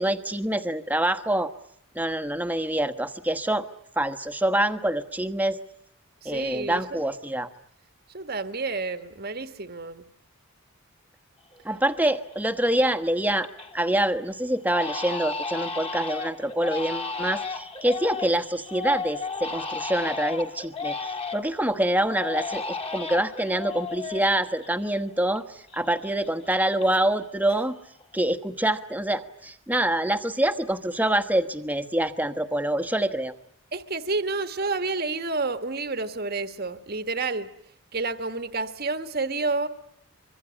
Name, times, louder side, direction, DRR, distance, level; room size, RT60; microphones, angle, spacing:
voice 1, 0.0-1.5 1.9-3.7 4.0-5.6 6.2-7.5 11.6-13.5 13.7-27.7 28.1-33.3, right 1 dB, 5° right, 9 dB, 1.2 m, -26 dB
voice 2, 6.2-7.0 8.1-10.1 33.7-37.5 37.9-39.7, right 3 dB, 45° right, 10 dB, 1.4 m, -29 dB
Crying sobbing, 11.5-11.6 12.1-12.5 12.9-13.8 14.1-14.2 14.7-21.6 22.1-25.4 25.7-27.2 27.5-28.0, left 4 dB, 25° left, 2.0 m, -34 dB
25.5 x 23.5 x 9.8 m, 0.71 s
head